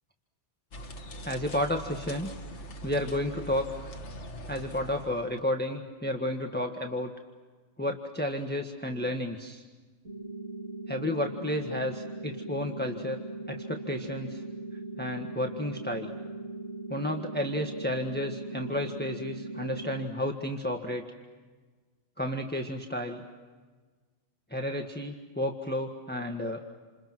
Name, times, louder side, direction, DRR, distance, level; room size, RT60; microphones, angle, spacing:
sound 1, 0.7-5.4, right 1 dB, 80° left, 1.8 m, -42 dB
voice 1, 1.2-2.3 2.8-3.7 4.5-7.1 7.8-9.6 10.9-13.2 13.5-14.4 15.0-16.1 16.9-21.0 22.2-23.2 24.5-26.6, left 1 dB, 10° left, 2 dB, 1.6 m, -32 dB
sound 2, 10.0-20.1, right 2 dB, 80° right, 4.6 m, -39 dB
29.5 x 27.5 x 6.2 m, 1.4 s
omnidirectional pair, 1.2 m